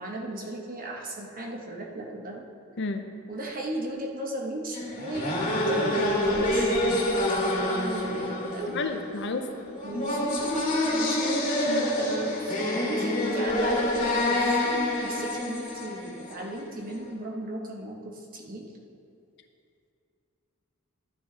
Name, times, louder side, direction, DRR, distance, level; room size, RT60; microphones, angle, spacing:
voice 1, 0.0-2.5 3.3-7.2 7.7-8.8 9.8-10.5 11.0-11.3 12.0-14.6 14.9-18.7, right 1 dB, 40° right, 0 dB, 1.2 m, -36 dB
sound 1, 4.7-16.6, left 1 dB, 40° left, 2.2 m, -27 dB
voice 2, 8.7-9.4 11.7-11.9, left 3 dB, 55° left, 6 dB, 0.7 m, -31 dB
12.5 x 8.8 x 3.4 m, 2.5 s
head